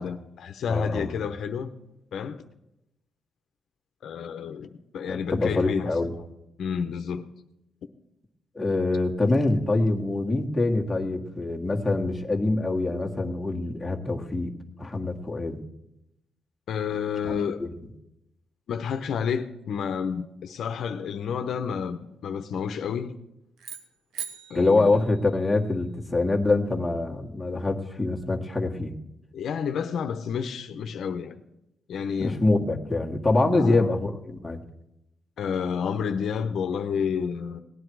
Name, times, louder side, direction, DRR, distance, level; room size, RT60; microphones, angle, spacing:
voice 1, 0.0-1.7 2.1-2.4 4.0-6.2 6.6-7.3 16.7-17.6 18.7-23.1 24.5-25.0 29.3-31.4 31.9-32.4 33.5-33.9 35.4-37.6, left 7 dB, 70° left, 0.9 m, -30 dB
voice 2, 0.7-1.1 5.1-6.2 8.6-14.5 14.8-15.6 17.2-17.7 24.5-28.9 32.2-34.6, left 2 dB, 10° left, 1.8 m, -25 dB
sound 1, 23.6-25.9, right 8 dB, 80° right, 1.3 m, -41 dB
18.0 x 10.0 x 4.7 m
cardioid pair, 100°, 0 cm